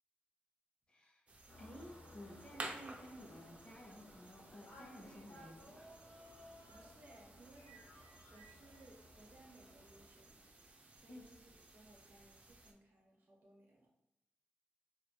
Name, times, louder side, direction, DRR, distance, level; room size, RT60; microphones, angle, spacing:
voice 1, 0.9-1.3 1.6-5.9 11.1-11.2, equal, 25° left, 1 dB, 0.4 m, -54 dB
sound 1, 1.3-12.7, right 2 dB, 35° right, 0.3 m, -55 dB
sound 2, 1.5-10.0, left 1 dB, 85° left, 0.7 m, -59 dB
voice 2, 6.7-7.8 8.3-10.5 10.9-13.9, right 1 dB, 65° right, -1 dB, 0.7 m, -63 dB
2.1 x 2.0 x 3.0 m, 0.87 s
wide cardioid pair, 115°, 4 cm